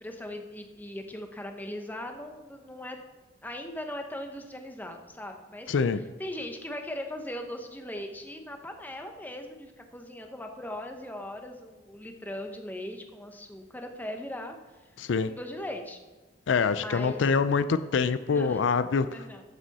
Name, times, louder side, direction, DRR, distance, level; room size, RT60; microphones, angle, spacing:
voice 1, 0.0-3.0 3.4-5.7 6.2-14.6 15.3-16.0 16.8-17.3 18.3-18.6 19.0-19.4, left 1 dB, 10° left, 4 dB, 1.0 m, -39 dB
voice 2, 5.7-6.0 15.0-15.3 16.5-19.1, left 5 dB, 80° left, 13 dB, 0.4 m, -25 dB
14.0 x 6.2 x 4.2 m, 1.2 s
head